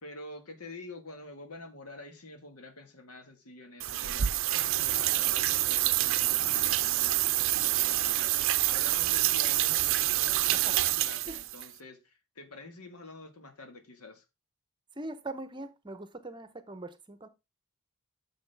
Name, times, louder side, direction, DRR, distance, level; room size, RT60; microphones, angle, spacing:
voice 1, 0.0-14.2, left 2 dB, 80° left, 1.7 m, -47 dB
sound 1, 3.8-11.7, right 14 dB, 60° right, 0.5 m, -27 dB
voice 2, 14.9-17.3, right 2 dB, 20° right, 0.8 m, -41 dB
9.6 x 6.5 x 3.4 m
head